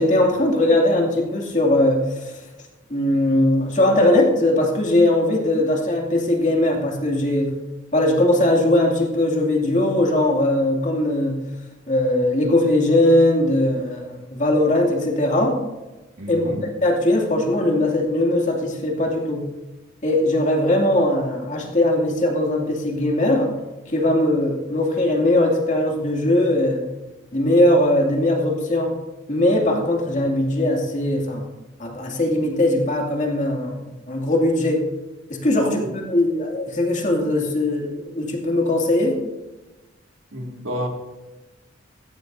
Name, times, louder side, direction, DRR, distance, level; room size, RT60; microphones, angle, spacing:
voice 1, 0.0-2.4 2.9-7.6 7.9-11.4 11.9-15.6 16.3-16.4 16.8-19.5 20.0-23.5 23.9-26.8 27.3-28.9 29.3-31.5 31.8-34.8 35.3-35.8 36.1-39.2, left 1 dB, 40° left, 0 dB, 2.4 m, -20 dB
voice 2, 16.2-16.7 35.6-35.7 40.3-40.9, equal, 75° right, 2 dB, 2.2 m, -30 dB
15.5 x 13.5 x 2.7 m, 1.1 s
head